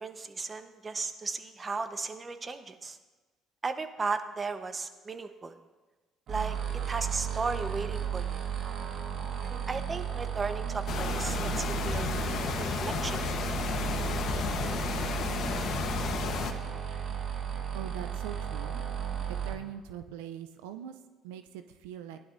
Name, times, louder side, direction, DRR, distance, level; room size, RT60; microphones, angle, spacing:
voice 1, 0.0-3.0 3.6-5.5 6.3-6.6 6.9-8.4 9.4-13.5, right 4 dB, 30° right, 9 dB, 0.9 m, -36 dB
sound 1, 6.3-19.5, right 8 dB, 60° right, 1.6 m, -34 dB
sound 2, 10.9-16.5, left 6 dB, 60° left, 1.0 m, -32 dB
voice 2, 17.7-18.8 19.4-22.2, right 9 dB, 90° right, 9 dB, 0.5 m, -42 dB
17.5 x 11.0 x 2.6 m, 1.2 s
supercardioid pair, 65°, 0 cm